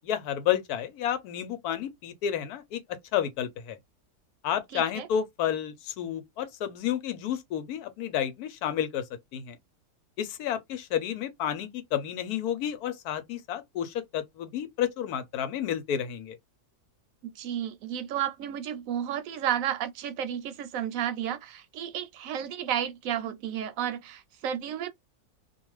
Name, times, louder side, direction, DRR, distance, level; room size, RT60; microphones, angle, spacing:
voice 1, 0.0-3.8 4.4-9.0 9.3-9.6 10.2-16.4, left 10 dB, 90° left, 1.1 m, -31 dB
voice 2, 4.7-5.1 17.2-24.9, right 10 dB, 70° right, 0.9 m, -32 dB
2.5 x 2.3 x 3.0 m
omnidirectional pair, 1.6 m